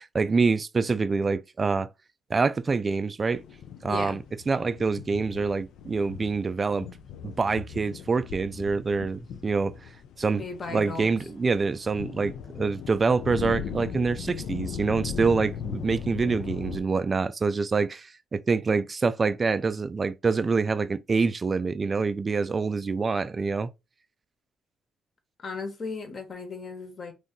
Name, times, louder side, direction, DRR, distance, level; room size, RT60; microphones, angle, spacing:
voice 1, 0.0-1.9 2.3-3.4 3.8-6.9 7.2-9.7 10.2-10.4 10.7-23.7, right 4 dB, 35° right, 0.3 m, -26 dB
sound 1, 3.3-16.8, left 7 dB, 80° left, 0.4 m, -38 dB
voice 2, 3.9-4.2 10.3-11.1 25.4-27.1, left 4 dB, 45° left, 1.1 m, -36 dB
2.7 x 2.6 x 3.7 m
cardioid pair, 90°, 0 cm